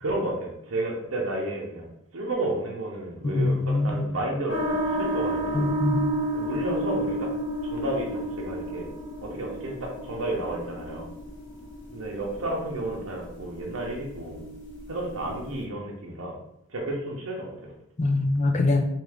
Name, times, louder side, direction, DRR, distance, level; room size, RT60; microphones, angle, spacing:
voice 1, 0.0-5.7 6.3-7.3 7.6-8.1 8.4-8.9 9.2-11.1 11.9-14.5 14.9-16.4 16.7-17.7, right 1 dB, 75° right, -2 dB, 0.7 m, -32 dB
voice 2, 3.2-4.1 5.5-6.0 18.0-18.8, left 2 dB, 35° left, 3 dB, 0.5 m, -23 dB
sound 1, 4.5-15.6, right 1 dB, 60° left, 1.1 m, -32 dB
3.6 x 2.5 x 3.4 m, 0.77 s
head